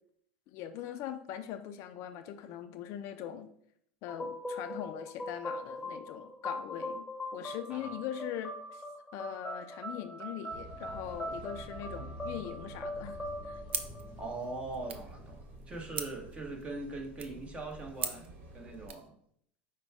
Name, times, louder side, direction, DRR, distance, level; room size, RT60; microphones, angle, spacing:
voice 1, 0.5-3.5 4.0-7.1 7.3-8.8 9.1-13.2 13.5-13.6, left 10 dB, 55° left, 8 dB, 0.5 m, -41 dB
sound 1, 4.1-14.7, left 1 dB, 5° left, 1.2 m, -41 dB
sound 2, 10.5-18.9, right 1 dB, 40° right, 1.7 m, -49 dB
sound 3, 13.7-19.1, right 7 dB, 90° right, 0.5 m, -43 dB
voice 2, 14.2-15.4 15.7-18.3 18.5-19.2, right 3 dB, 20° right, 1 dB, 1.2 m, -41 dB
5.1 x 2.2 x 4.7 m, 0.67 s
hypercardioid pair, 100°, 6 cm